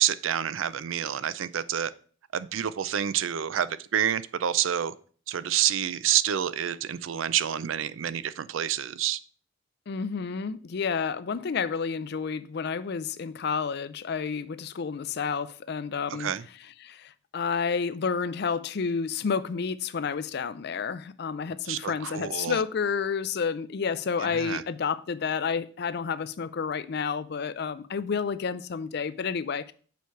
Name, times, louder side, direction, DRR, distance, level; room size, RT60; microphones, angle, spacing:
voice 1, 0.0-1.9 2.3-4.9 5.3-9.2 16.2-16.4 21.7-22.6 24.2-24.6, right 10 dB, 75° right, 0.4 m, -28 dB
voice 2, 9.9-16.3 16.8-29.7, left 5 dB, 55° left, 0.4 m, -30 dB
7.0 x 4.6 x 4.5 m
head